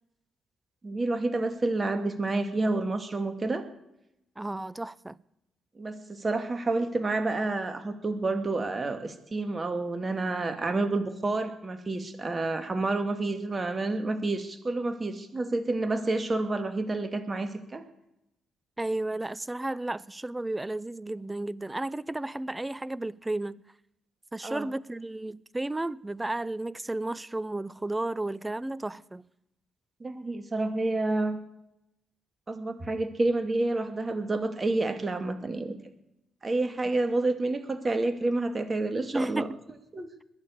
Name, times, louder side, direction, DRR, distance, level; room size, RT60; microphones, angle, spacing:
voice 1, 0.8-3.7 5.8-17.8 24.4-24.7 30.0-31.4 32.5-35.8 36.4-39.5 39.9-40.1, right 2 dB, 35° right, 2.3 m, -29 dB
voice 2, 4.4-5.2 18.8-23.6 24.3-29.2 39.1-39.6, right 2 dB, 15° right, 0.6 m, -33 dB
21.0 x 7.2 x 8.5 m
hypercardioid pair, 40°, 0 cm